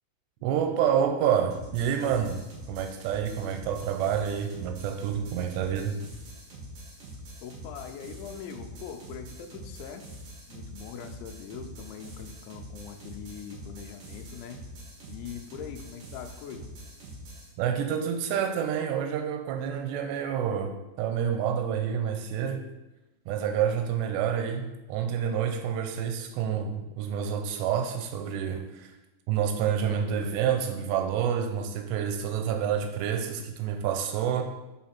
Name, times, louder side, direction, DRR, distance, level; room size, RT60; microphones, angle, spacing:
voice 1, 0.4-6.0 17.6-22.6 23.3-28.9 29.3-34.4, right 8 dB, 80° right, 5 dB, 2.6 m, -28 dB
sound 1, 1.5-17.5, equal, 65° right, 1.4 m, -45 dB
voice 2, 7.4-10.0 10.5-14.6 15.1-16.7, left 7 dB, 90° left, 6 dB, 3.0 m, -42 dB
5.8 x 5.5 x 4.3 m, 1.0 s
omnidirectional pair, 5.1 m